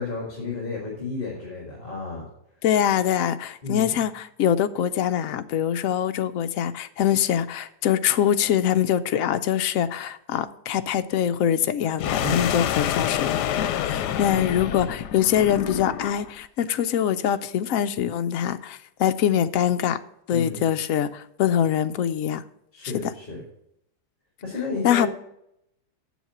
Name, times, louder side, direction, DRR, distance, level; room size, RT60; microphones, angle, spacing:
voice 1, 0.0-2.2 3.6-3.9 12.2-12.5 20.3-20.6 22.7-23.4 24.4-25.1, left 3 dB, 35° left, -2 dB, 2.1 m, -31 dB
voice 2, 2.6-20.0 20.3-22.4 23.0-23.1 24.8-25.1, left 9 dB, 70° left, 10 dB, 0.9 m, -24 dB
sound 1, 12.0-16.3, left 10 dB, 85° left, 1.2 m, -27 dB
7.4 x 7.2 x 5.9 m, 0.78 s
omnidirectional pair, 1.8 m